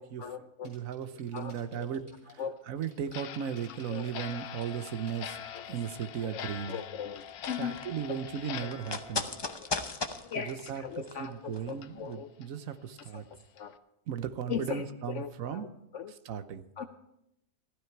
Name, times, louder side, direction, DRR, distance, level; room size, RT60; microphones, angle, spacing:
voice 1, 0.0-0.7 1.3-1.9 2.4-2.6 3.9-4.4 5.5-5.6 6.2-6.4 6.7-7.8 8.1-8.2 8.6-8.9 9.6-9.7 10.3-12.3 13.1-13.7 14.5-16.1 16.8-16.9, left 8 dB, 65° left, 8 dB, 0.9 m, -39 dB
sound 1, 0.6-2.4 2.8-6.3 6.7-6.8 7.5-7.8, equal, 35° right, 4.4 m, -58 dB
voice 2, 0.6-2.0 2.7-5.4 5.7-6.8 7.6-9.3 10.5-13.2 14.1-15.7 16.2-16.6, right 8 dB, 70° right, 11 dB, 1.3 m, -36 dB
Clock, 3.1-10.3 10.6-10.7 11.2-11.3 11.8-11.9 12.4-12.5 13.0-13.1 13.6-13.7, left 9 dB, 85° left, 1.2 m, -44 dB
sound 2, 7.1-11.8 12.1-12.2, left 3 dB, 25° left, 0.5 m, -38 dB
15.5 x 12.5 x 4.6 m, 0.82 s
omnidirectional pair, 1.5 m